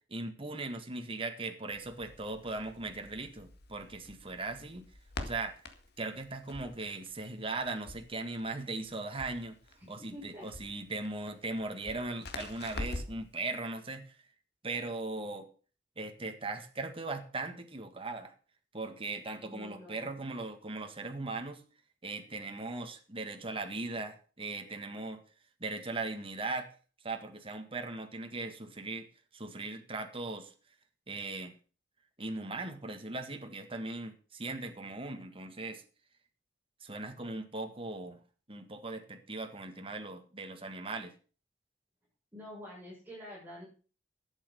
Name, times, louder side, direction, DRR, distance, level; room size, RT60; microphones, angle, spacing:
voice 1, 0.1-4.9 5.2-5.6 6.0-9.6 9.9-14.1 14.6-15.5 16.0-18.3 18.7-21.6 22.0-25.2 25.6-26.7 27.0-29.1 29.3-30.5 31.1-31.5 32.2-35.8 36.8-38.2 38.5-41.1, right 3 dB, 30° right, 6 dB, 1.7 m, -39 dB
Crackle, 1.7-13.3, left 2 dB, 60° left, 1.9 m, -46 dB
voice 2, 9.8-10.4 19.4-20.1 42.3-43.6, left 1 dB, 10° right, -9 dB, 7.0 m, -47 dB
11.5 x 8.7 x 6.9 m, 0.39 s
head